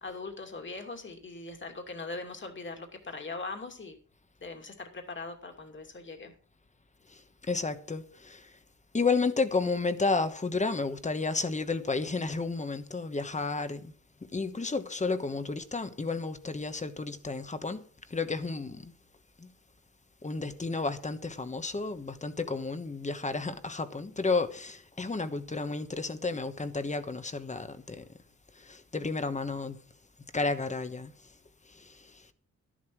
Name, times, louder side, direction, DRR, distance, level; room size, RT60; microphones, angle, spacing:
voice 1, 0.0-4.0 4.4-6.3, left 3 dB, 40° left, 2.6 m, -40 dB
voice 2, 7.5-8.5 8.9-13.9 14.3-17.8 18.1-18.9 19.4-19.5 20.2-28.0 28.6-29.8 30.3-31.1 31.7-32.3, left 3 dB, 25° left, 1.1 m, -32 dB
13.0 x 11.5 x 4.7 m
wide cardioid pair, 135°, 29 cm